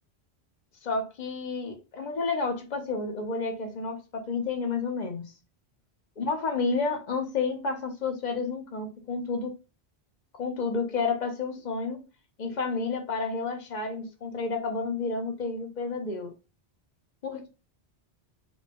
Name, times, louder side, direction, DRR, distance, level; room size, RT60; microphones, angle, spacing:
voice 1, 0.8-5.3 6.2-9.5 10.3-12.0 12.4-16.3 17.2-17.5, left 4 dB, 45° left, 0.8 m, -30 dB
4.4 x 2.2 x 2.9 m
omnidirectional pair, 1.1 m